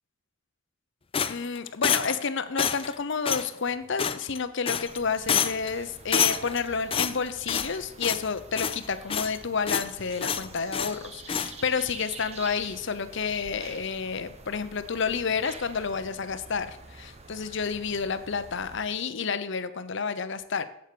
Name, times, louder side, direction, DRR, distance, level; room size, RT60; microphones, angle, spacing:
sound 1, 1.1-2.3 2.6-2.9 3.3-3.5 4.0-4.4 4.7-5.0 5.3-5.7 6.1-6.6 6.9-7.8 8.0-8.3 8.6-9.4 9.7-9.9 10.2-11.0 11.3-11.5, left 7 dB, 30° left, 0.4 m, -27 dB
voice 1, 1.3-20.7, left 5 dB, 65° left, 12 dB, 0.8 m, -30 dB
sound 2, 4.8-18.9, right 3 dB, 30° right, 1.0 m, -47 dB
8.1 x 7.8 x 6.8 m, 0.80 s
head